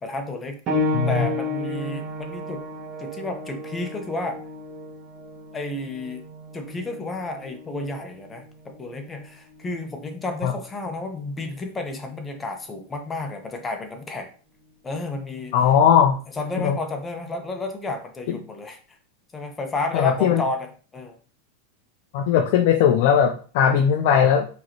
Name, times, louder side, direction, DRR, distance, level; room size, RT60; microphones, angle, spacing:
voice 1, 0.0-0.6 1.1-2.6 3.0-4.4 5.5-6.2 6.5-14.3 14.8-15.5 16.4-19.0 19.3-21.2, left 2 dB, 20° left, 4 dB, 1.0 m, -31 dB
sound 1, 0.7-10.9 11.8-12.0 12.7-12.8, left 1 dB, 40° right, 1.5 m, -32 dB
voice 2, 0.9-1.3 10.4-10.5 15.5-16.2 16.6-16.8 19.9-20.4 22.1-24.5, left 8 dB, 60° left, 3 dB, 0.6 m, -18 dB
4.7 x 3.2 x 3.0 m, 0.39 s
hypercardioid pair, 105°, 0 cm